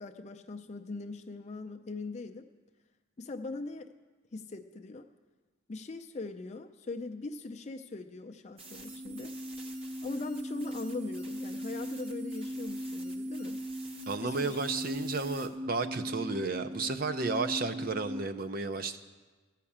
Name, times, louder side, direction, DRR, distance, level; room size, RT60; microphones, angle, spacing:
voice 1, 0.0-2.5 3.2-3.9 4.3-5.1 5.7-9.3 10.0-13.6 14.2-14.6, left 3 dB, 35° left, 6 dB, 0.5 m, -40 dB
sound 1, 8.6-15.5, right 3 dB, 30° right, 1.0 m, -51 dB
sound 2, 8.6-18.2, equal, 85° right, 2.0 m, -39 dB
voice 2, 14.1-19.0, right 3 dB, 45° right, 9 dB, 0.6 m, -33 dB
14.0 x 5.8 x 8.6 m, 1.3 s
head